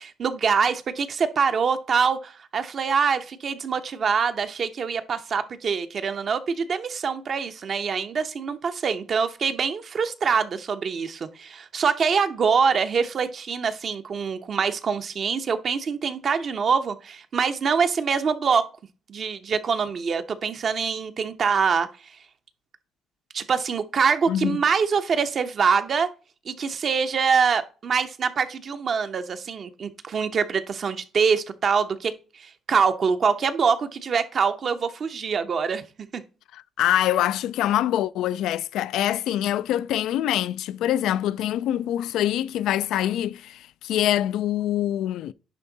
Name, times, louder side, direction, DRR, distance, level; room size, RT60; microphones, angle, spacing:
voice 1, 0.0-18.7 19.1-21.9 23.3-26.1 26.5-35.8 36.1-36.2, right 6 dB, 50° right, 0.8 m, -24 dB
voice 2, 36.5-45.3, left 12 dB, 85° left, 0.3 m, -25 dB
10.5 x 3.6 x 3.9 m
cardioid pair, 90°, 0 cm